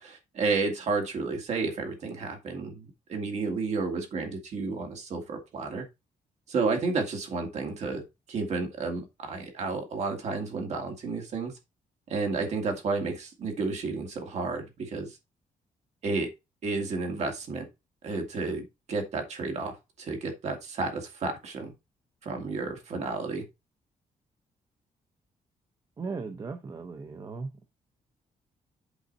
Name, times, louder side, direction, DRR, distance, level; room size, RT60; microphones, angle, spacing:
voice 1, 0.0-5.8 6.5-11.5 12.1-15.2 16.0-16.3 16.6-17.7 18.0-21.7 22.2-23.4, right 4 dB, 50° right, 2.3 m, -31 dB
voice 2, 26.0-27.5, right 4 dB, 25° right, 0.7 m, -37 dB
8.2 x 5.0 x 4.1 m
wide cardioid pair, 180°, 14 cm